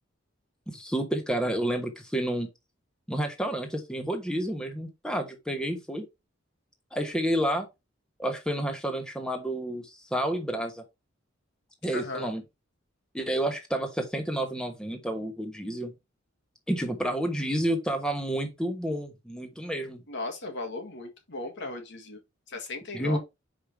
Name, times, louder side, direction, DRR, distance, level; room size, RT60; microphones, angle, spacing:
voice 1, 0.7-2.5 3.1-6.0 6.9-7.7 8.2-9.8 10.1-10.8 11.8-12.4 13.1-15.9 16.7-20.0 22.9-23.2, right 1 dB, 5° left, 1.2 m, -30 dB
voice 2, 11.9-12.3 20.1-22.2 22.5-23.2, left 2 dB, 65° left, 1.8 m, -36 dB
5.5 x 5.1 x 4.5 m
head